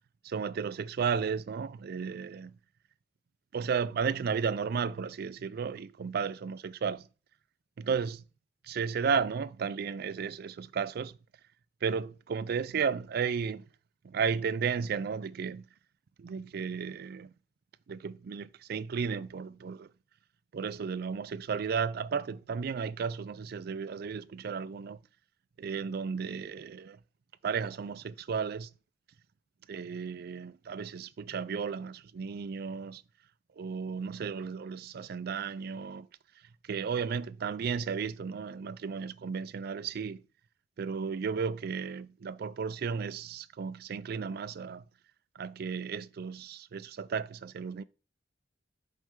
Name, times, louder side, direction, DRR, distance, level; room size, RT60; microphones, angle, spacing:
voice 1, 0.2-2.6 3.5-7.1 7.8-8.2 8.6-11.2 11.8-13.7 14.0-15.6 16.2-17.3 17.9-19.9 20.5-25.0 25.6-27.0 27.4-28.7 29.7-33.0 33.6-36.1 36.7-40.2 40.8-44.8 45.4-47.8, right 6 dB, 55° right, 0.4 m, -34 dB
5.8 x 5.5 x 3.6 m
head